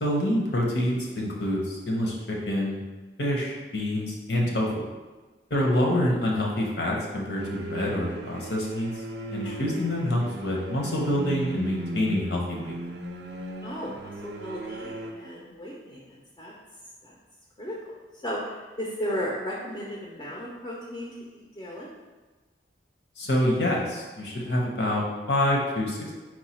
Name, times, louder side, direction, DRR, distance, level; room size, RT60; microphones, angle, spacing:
voice 1, 0.0-2.8 3.2-4.9 5.5-8.9 9.3-12.8 23.2-26.1, left 1 dB, 75° left, -2 dB, 0.9 m, -26 dB
sound 1, 7.4-15.1, right 2 dB, 70° right, 0.5 m, -37 dB
voice 2, 9.4-9.7 13.6-16.5 17.0-17.2 17.6-17.8 18.2-21.9, equal, 25° left, -4 dB, 0.6 m, -35 dB
4.6 x 2.3 x 4.3 m, 1.3 s
head